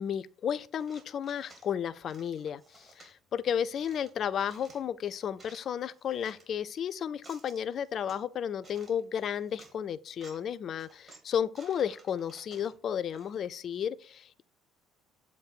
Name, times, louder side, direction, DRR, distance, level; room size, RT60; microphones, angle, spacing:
voice 1, 0.0-14.4, left 8 dB, 50° left, 0.4 m, -33 dB
sound 1, 0.8-1.7 2.1-3.1 3.7-4.9 5.2-6.5 7.0-8.2 8.6-9.1 9.4-9.7 10.1-10.5 10.8-13.4, right 3 dB, 35° right, 1.9 m, -56 dB
7.2 x 2.6 x 5.3 m
hypercardioid pair, 55°, 0 cm